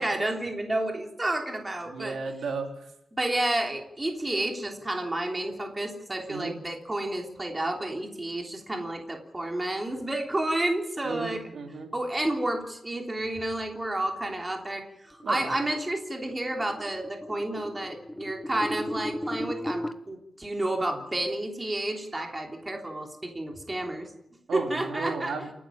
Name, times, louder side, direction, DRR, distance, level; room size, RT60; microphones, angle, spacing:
voice 1, 0.0-2.2 3.1-11.4 11.9-24.1 24.5-25.3, right 1 dB, 15° right, 2 dB, 3.2 m, -30 dB
voice 2, 1.9-2.9 6.3-6.6 11.0-11.9 15.2-15.5 24.5-25.5, right 4 dB, 75° right, 3 dB, 3.6 m, -34 dB
sound 1, 15.2-19.9, left 1 dB, 5° left, 1.0 m, -36 dB
28.5 x 12.5 x 8.9 m, 0.82 s
wide cardioid pair, 160°, 0 cm